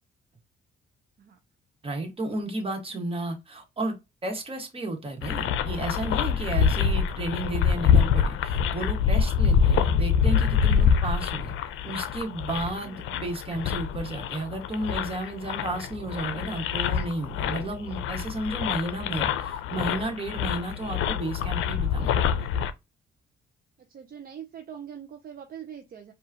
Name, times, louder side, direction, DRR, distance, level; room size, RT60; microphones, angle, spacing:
voice 1, 1.8-11.5 11.8-22.5, right 2 dB, 30° right, 1.4 m, -33 dB
sound 1, 5.2-22.7, left 7 dB, 90° left, 0.5 m, -25 dB
voice 2, 23.8-26.1, right 8 dB, 50° right, 0.6 m, -43 dB
4.7 x 2.4 x 2.8 m
cardioid pair, 90°, 20 cm